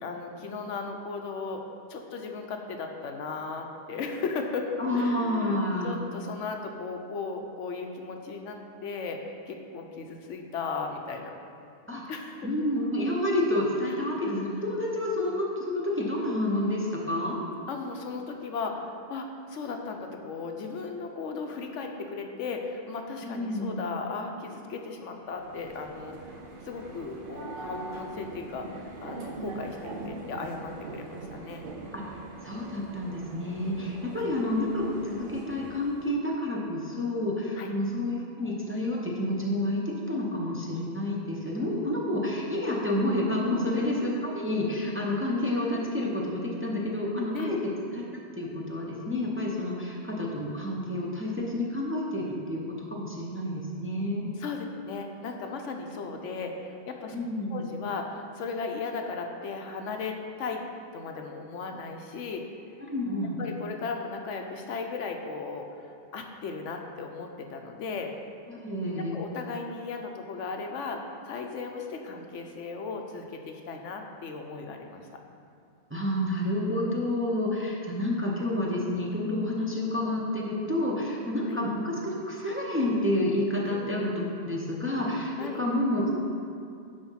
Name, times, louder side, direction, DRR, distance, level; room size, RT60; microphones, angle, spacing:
voice 1, 0.0-1.6 1.9-11.3 12.1-12.5 13.8-14.2 17.7-26.2 26.6-31.7 34.2-34.3 37.6-37.7 43.5-43.8 47.3-47.6 54.4-57.2 57.5-60.6 60.9-62.5 63.4-68.1 69.1-75.2 81.5-81.6 83.6-84.1 85.4-85.6, left 4 dB, 80° left, 3 dB, 1.0 m, -36 dB
voice 2, 4.8-6.0 11.9-12.0 12.4-17.4 23.2-23.8 31.9-39.8 40.1-47.6 47.9-52.6 52.9-54.3 57.1-57.7 62.8-63.4 68.5-69.1 75.9-86.2, left 1 dB, 10° right, -3 dB, 0.8 m, -29 dB
sound 1, 25.2-36.1, right 2 dB, 50° right, 0.8 m, -42 dB
9.6 x 3.5 x 5.6 m, 2.5 s
omnidirectional pair, 1.2 m